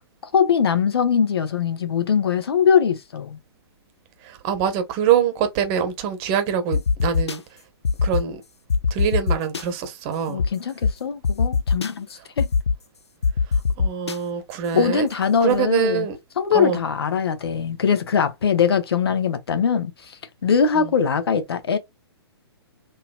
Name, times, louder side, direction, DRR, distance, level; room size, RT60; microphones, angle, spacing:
voice 1, 0.2-3.4 10.3-12.1 12.4-12.5 14.7-16.1 16.4-21.8, left 7 dB, 65° left, 0.8 m, -21 dB
voice 2, 4.2-7.4 8.0-8.4 8.9-10.4 13.8-15.1 15.4-16.2 16.5-16.8 20.7-20.9, right 8 dB, 30° right, 0.9 m, -24 dB
sound 1, 6.7-7.4 7.8-8.2 8.7-9.6 10.4-10.5 10.8-10.9 11.2-11.9 12.4-12.8 13.2-14.1, left 5 dB, 85° left, 0.5 m, -21 dB
4.0 x 2.6 x 2.2 m
figure-of-eight pair, 120°, 14 cm